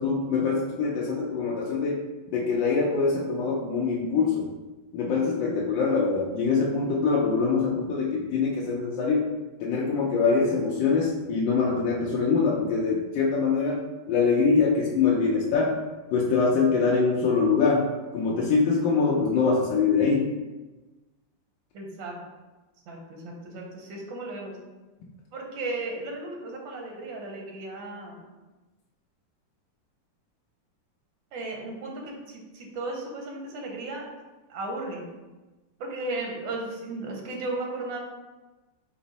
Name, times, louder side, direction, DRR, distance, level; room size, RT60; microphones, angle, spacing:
voice 1, 0.0-2.0 2.3-4.5 4.9-9.3 9.6-13.8 14.1-15.7 16.1-17.9 18.1-20.3, left 4 dB, 80° left, -3 dB, 1.3 m, -24 dB
voice 2, 21.7-22.2 22.9-24.6 25.3-28.2 31.3-34.1 34.5-35.1 35.8-38.0, right 2 dB, 90° right, 0 dB, 1.5 m, -35 dB
4.8 x 2.0 x 4.0 m, 1.2 s
omnidirectional pair, 2.0 m